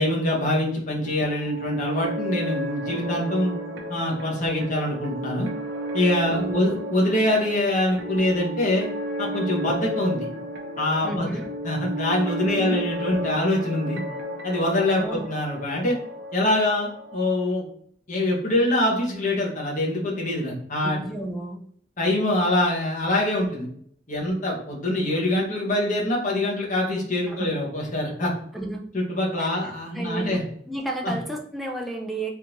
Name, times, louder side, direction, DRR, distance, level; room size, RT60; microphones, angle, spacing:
voice 1, 0.0-3.5 3.9-5.5 5.9-8.9 9.2-10.3 10.8-11.3 11.6-14.0 14.4-16.0 16.3-17.6 18.1-21.0 22.0-23.7 24.1-28.3 28.9-30.4 31.0-31.1, left 1 dB, 40° left, -2 dB, 0.9 m, -24 dB
sound 1, 1.0-17.5, right 1 dB, 85° right, 0.7 m, -33 dB
voice 2, 11.0-11.5 12.5-12.8 14.9-15.3 20.8-21.6 27.2-27.5 28.5-28.8 29.4-29.6 29.9-30.4 30.7-32.3, right 1 dB, ahead, -1 dB, 0.4 m, -32 dB
3.6 x 2.5 x 2.9 m, 0.63 s
head